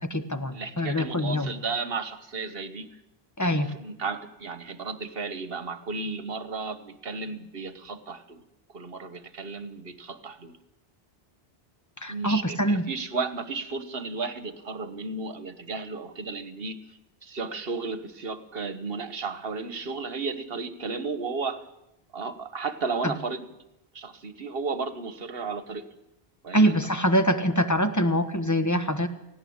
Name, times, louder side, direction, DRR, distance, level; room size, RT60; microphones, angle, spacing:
voice 1, 0.0-1.5 3.4-3.7 12.0-12.8 23.0-23.1 26.5-29.1, equal, 15° left, 9 dB, 1.4 m, -24 dB
voice 2, 0.5-2.9 3.4-8.4 8.7-10.6 12.1-16.8 17.2-21.6 22.1-23.4 23.9-25.8 26.4-26.8, right 4 dB, 60° right, 12 dB, 1.5 m, -34 dB
18.0 x 17.0 x 8.7 m, 0.87 s
omnidirectional pair, 1.1 m